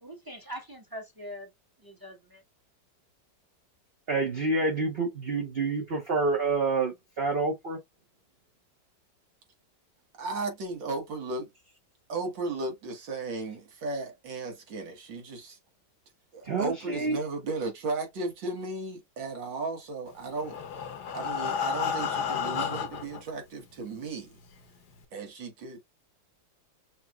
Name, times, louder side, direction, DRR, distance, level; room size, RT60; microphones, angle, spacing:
voice 1, 0.0-1.5 1.8-2.4, equal, 15° right, 1.1 m, -42 dB
voice 2, 4.1-7.8 16.4-17.2, right 3 dB, 40° right, 1.1 m, -28 dB
voice 3, 10.2-11.5 12.1-15.6 16.3-20.6 21.1-24.4 25.1-25.8, right 3 dB, 80° right, 2.1 m, -35 dB
Breathing, 20.3-23.2 24.0-24.1 24.4-24.5 25.0-25.1, left 7 dB, 65° left, 1.4 m, -31 dB
5.8 x 2.9 x 2.4 m
omnidirectional pair, 2.0 m